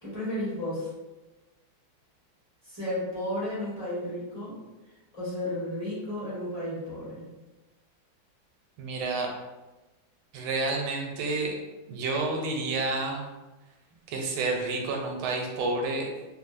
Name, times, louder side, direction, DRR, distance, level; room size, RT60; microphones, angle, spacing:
voice 1, 0.0-0.9 2.6-4.6 5.1-7.3, left 1 dB, 15° left, -11 dB, 1.3 m, -33 dB
voice 2, 8.8-9.3 10.3-11.6 11.9-13.2 14.1-16.1, right 3 dB, 90° right, 1 dB, 1.5 m, -29 dB
3.3 x 2.6 x 2.5 m, 1.1 s
omnidirectional pair, 2.2 m